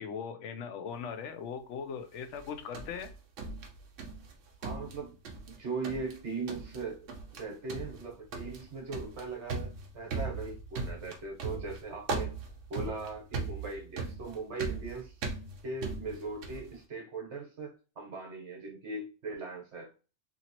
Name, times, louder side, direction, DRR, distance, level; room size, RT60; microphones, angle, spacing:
voice 1, 0.0-3.1, left 6 dB, 75° left, 0.9 m, -39 dB
sound 1, 2.4-4.3 4.6-5.6 5.8-6.2 6.5-6.8 7.1-7.4 7.7-16.7, right 3 dB, 85° right, 1.1 m, -38 dB
voice 2, 4.6-5.2 5.5-12.4 12.7-15.1 15.6-20.0, right 3 dB, 70° right, 1.3 m, -39 dB
2.9 x 2.9 x 2.8 m
omnidirectional pair, 1.2 m